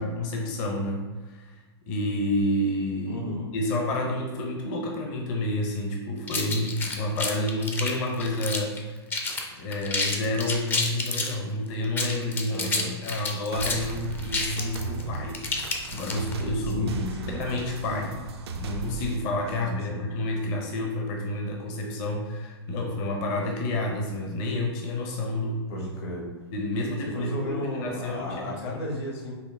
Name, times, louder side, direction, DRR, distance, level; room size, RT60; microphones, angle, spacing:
voice 1, 0.0-1.6 1.9-3.3 3.5-8.8 9.6-15.5 15.9-16.9 17.4-18.2 18.5-25.6 26.5-28.8, left 1 dB, 40° left, 0 dB, 0.7 m, -29 dB
voice 2, 3.1-3.5 12.5-12.9 16.7-17.4 19.6-20.0 25.7-26.3 27.1-29.3, left 1 dB, 70° left, -2 dB, 1.5 m, -33 dB
sound 1, 6.3-8.8 9.1-9.4 9.7-11.3 11.8-16.4, left 3 dB, 15° left, 0.5 m, -29 dB
sound 2, 13.5-19.2, right 5 dB, 70° right, 0.5 m, -36 dB
5.5 x 2.1 x 3.4 m, 1.3 s
hypercardioid pair, 120°, 14 cm